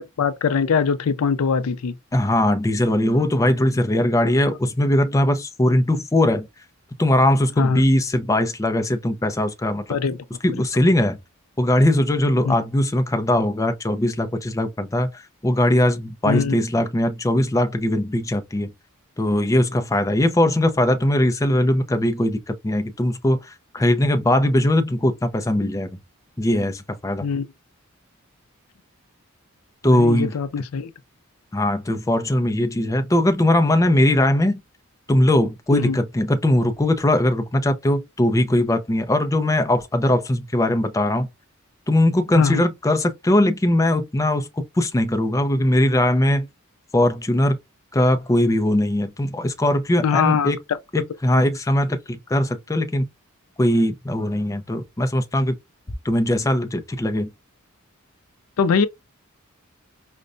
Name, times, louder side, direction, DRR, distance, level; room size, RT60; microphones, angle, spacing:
voice 1, 0.0-1.9 7.6-7.8 9.9-10.2 12.4-12.5 16.3-16.6 27.2-27.5 29.8-30.9 35.7-36.0 42.3-42.6 50.0-50.5 51.0-51.1 58.6-58.9, left 5 dB, 85° left, 0.4 m, -22 dB
voice 2, 2.1-6.5 7.0-10.0 10.4-11.2 11.6-18.7 19.2-25.9 26.4-27.3 29.8-30.4 31.5-34.6 35.1-41.3 41.9-46.5 46.9-47.6 47.9-50.6 50.9-53.1 53.6-55.5 56.0-57.3, left 1 dB, 15° left, 0.4 m, -20 dB
5.1 x 2.1 x 2.4 m
head